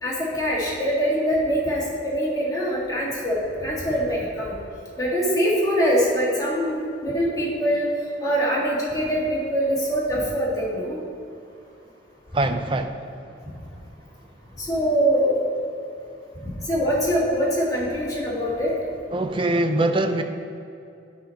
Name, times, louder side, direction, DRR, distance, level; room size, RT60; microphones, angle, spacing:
voice 1, 0.0-4.5 5.0-7.9 8.2-11.0 14.6-15.4 16.4-18.7, equal, 20° left, -6 dB, 1.9 m, -23 dB
voice 2, 12.3-13.1 19.1-20.2, right 2 dB, 30° right, 7 dB, 0.4 m, -23 dB
10.0 x 4.3 x 5.7 m, 2.6 s
head